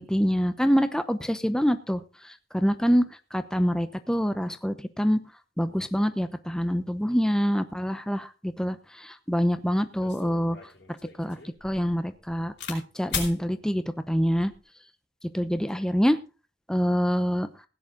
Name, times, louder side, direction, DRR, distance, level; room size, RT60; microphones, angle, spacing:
voice 1, 0.0-2.0 2.5-3.0 3.3-5.2 5.6-10.6 11.2-11.4 11.6-14.5 15.3-16.2 16.7-17.5, equal, 5° left, 10 dB, 0.8 m, -25 dB
sound 1, 9.4-9.5 10.0-12.8 13.1-13.4 14.2-14.6, left 6 dB, 80° left, 4.7 m, -37 dB
16.5 x 10.0 x 3.8 m, 0.31 s
head